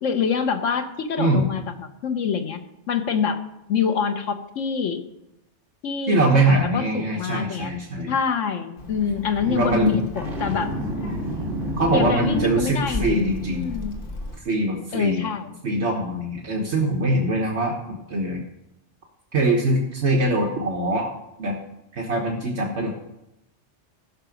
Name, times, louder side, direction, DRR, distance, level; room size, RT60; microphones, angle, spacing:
voice 1, 0.0-2.6 2.9-3.4 3.7-5.0 5.8-7.7 8.1-10.7 11.9-13.9 14.9-15.5, left 6 dB, 90° left, 7 dB, 1.3 m, -26 dB
voice 2, 6.1-8.1 9.4-10.0 11.8-13.8 14.4-15.3 15.6-18.4 19.3-21.1 21.4-21.6 21.9-22.9, right 1 dB, 65° right, 0 dB, 1.5 m, -23 dB
Child speech kid speaking, 8.8-14.4, left 1 dB, 50° left, 1.3 m, -36 dB
Boom, 10.2-13.4, equal, 45° right, 3.9 m, -30 dB
15.0 x 5.9 x 5.2 m, 0.88 s
omnidirectional pair, 1.3 m